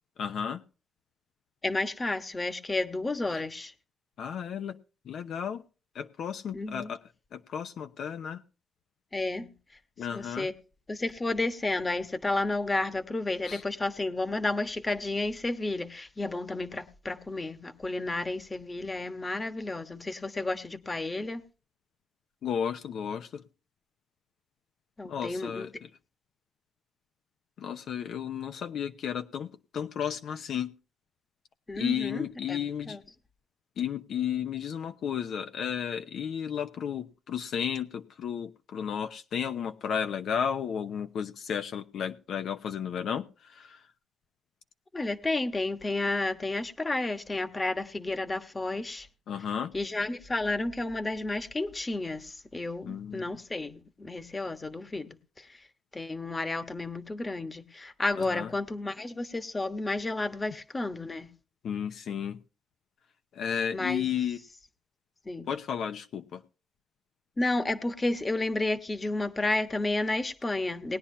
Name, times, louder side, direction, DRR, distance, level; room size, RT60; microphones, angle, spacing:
voice 1, 0.2-0.6 3.3-3.4 4.2-4.8 5.0-5.6 5.9-7.0 7.3-8.4 10.0-10.5 13.4-13.6 22.4-23.4 25.0-25.7 27.6-30.7 31.7-33.0 33.8-43.8 49.3-49.7 52.9-53.3 58.2-58.5 61.6-62.4 63.3-64.4 65.5-66.4, left 8 dB, 65° left, 7 dB, 0.9 m, -33 dB
voice 2, 1.6-3.7 6.5-6.9 9.1-9.5 10.1-10.5 10.9-21.4 25.0-25.7 31.7-33.0 44.9-49.1 49.7-55.1 55.4-55.6 55.9-61.3 63.7-64.1 65.2-65.5 67.4-71.0, left 2 dB, 20° left, 10 dB, 1.3 m, -31 dB
19.5 x 9.9 x 2.8 m, 0.33 s
cardioid pair, 90°, 0 cm